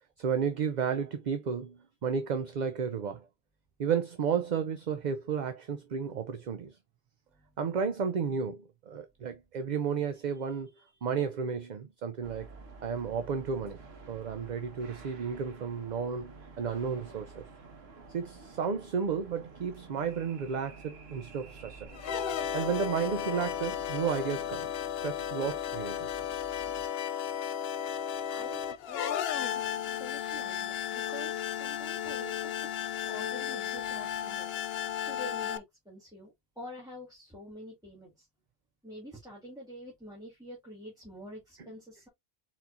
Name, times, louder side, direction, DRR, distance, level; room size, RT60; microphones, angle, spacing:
voice 1, 0.2-3.3 3.8-6.8 7.6-12.5 12.8-13.8 14.1-17.4 18.1-21.9 22.5-26.1, right 6 dB, 50° right, 0.7 m, -33 dB
sound 1, 12.2-26.9, right 4 dB, 85° right, 1.4 m, -50 dB
sound 2, 21.9-35.6, left 10 dB, 75° left, 0.8 m, -34 dB
voice 2, 28.3-32.5 33.1-38.3 38.8-42.1, equal, 5° right, 1.9 m, -47 dB
4.4 x 4.2 x 2.6 m
omnidirectional pair, 1.0 m